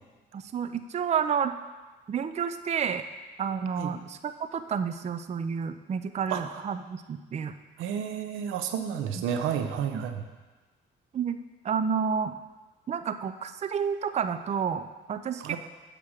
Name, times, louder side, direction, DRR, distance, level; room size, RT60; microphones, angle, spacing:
voice 1, 0.3-1.5 2.1-3.0 3.4-7.6 9.9-10.0 11.1-11.4 11.6-12.3 12.9-15.6, right 7 dB, 35° right, 10 dB, 0.4 m, -30 dB
voice 2, 7.8-10.2 15.4-15.6, right 8 dB, 90° right, 7 dB, 0.7 m, -31 dB
7.3 x 5.0 x 6.4 m, 1.3 s
cardioid pair, 90°, 20 cm